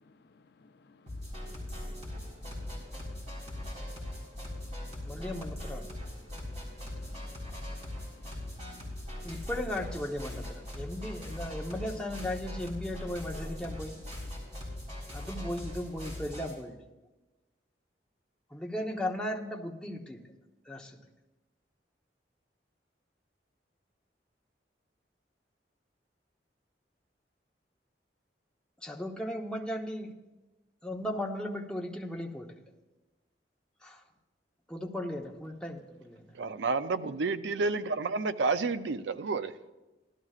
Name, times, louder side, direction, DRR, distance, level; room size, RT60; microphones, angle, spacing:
voice 1, 0.0-5.5 5.8-9.5 10.3-11.7 13.2-13.4 14.1-14.5, left 3 dB, 65° left, 0.5 m, -60 dB
sound 1, 1.1-16.5, left 1 dB, 40° right, 4.0 m, -40 dB
voice 2, 5.0-5.9 9.2-14.0 15.1-16.8 18.5-20.3 20.7-20.9 28.8-30.1 30.8-32.6 33.8-34.0 34.7-36.3, left 1 dB, 5° left, 0.9 m, -36 dB
voice 3, 36.4-39.7, right 4 dB, 85° right, 0.5 m, -30 dB
17.0 x 12.5 x 2.4 m
head